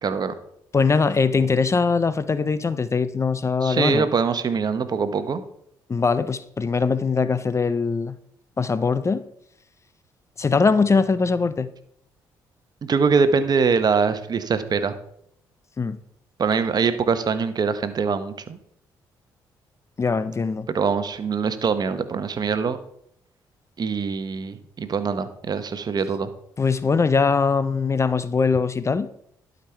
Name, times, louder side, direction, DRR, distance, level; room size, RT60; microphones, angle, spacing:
voice 1, 0.0-0.3 3.6-5.4 12.8-14.9 16.4-18.6 20.7-22.8 23.8-26.3, right 5 dB, 50° right, 1.0 m, -23 dB
voice 2, 0.7-4.1 5.9-8.2 8.6-9.2 10.4-11.7 15.8-16.0 20.0-20.7 26.6-29.1, left 4 dB, 30° left, 0.6 m, -21 dB
11.5 x 5.3 x 4.5 m
supercardioid pair, 60°, 9 cm